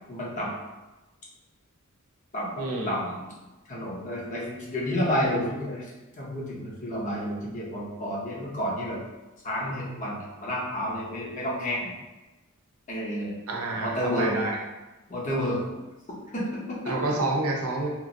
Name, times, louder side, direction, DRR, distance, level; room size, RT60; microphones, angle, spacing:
voice 1, 0.1-0.5 2.3-3.3 3.7-5.8 6.2-9.0 9.4-11.9 12.9-13.3 13.8-14.4 15.1-15.6 16.1-17.0, equal, 35° left, -5 dB, 0.7 m, -30 dB
voice 2, 2.6-3.0 13.5-14.6 16.8-17.9, right 2 dB, 80° right, -1 dB, 0.6 m, -28 dB
2.9 x 2.5 x 2.6 m, 1.1 s
head